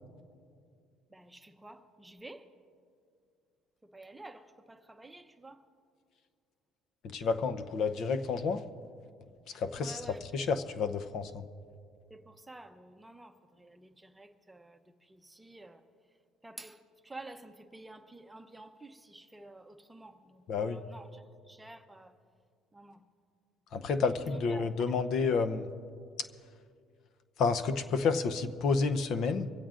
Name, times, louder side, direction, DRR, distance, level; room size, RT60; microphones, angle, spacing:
voice 1, 1.1-2.5 3.8-5.6 9.8-10.2 12.1-15.8 16.4-22.1 22.7-23.0 24.2-25.0, right 2 dB, 10° right, 7 dB, 0.8 m, -50 dB
voice 2, 7.0-8.6 9.5-10.0 10.3-11.4 20.5-20.8 23.7-25.7 27.4-29.5, left 4 dB, 55° left, 9 dB, 0.7 m, -30 dB
24.5 x 16.0 x 2.5 m, 2.3 s
cardioid pair, 115°, 0 cm